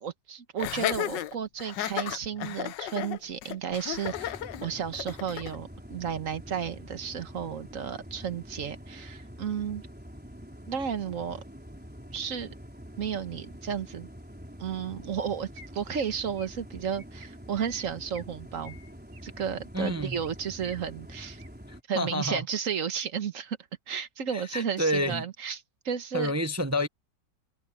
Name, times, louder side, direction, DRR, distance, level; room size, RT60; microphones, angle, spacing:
voice 1, 0.0-9.8 10.7-11.4 12.1-12.5 13.0-14.1 14.6-18.8 19.2-21.4 21.9-23.6 23.9-26.3, right 7 dB, 50° right, 1.5 m, -33 dB
Laughter, 0.6-5.6, left 12 dB, 85° left, 1.4 m, -33 dB
sound 1, 4.0-21.8, equal, 5° right, 4.1 m, -46 dB
Chirp tweet, 15.5-16.0 16.4-16.6 16.9-17.3 17.6-18.3 18.6-20.0 20.2-20.8 21.2-21.5 21.9-22.3, right 3 dB, 80° right, 3.8 m, -50 dB
voice 2, 19.7-20.2 21.7-22.4 24.3-25.3 26.1-26.9, equal, 20° right, 0.4 m, -29 dB
omnidirectional pair, 1.9 m